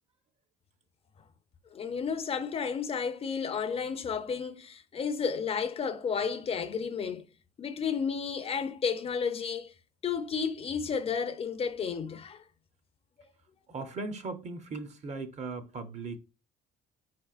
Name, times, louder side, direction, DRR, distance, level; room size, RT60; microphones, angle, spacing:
voice 1, 1.7-7.3 7.6-9.7 10.0-12.4, left 6 dB, 35° left, 0.4 m, -32 dB
voice 2, 13.7-16.2, right 3 dB, 40° right, 0.7 m, -38 dB
4.4 x 4.3 x 2.4 m
cardioid pair, 110°, 17 cm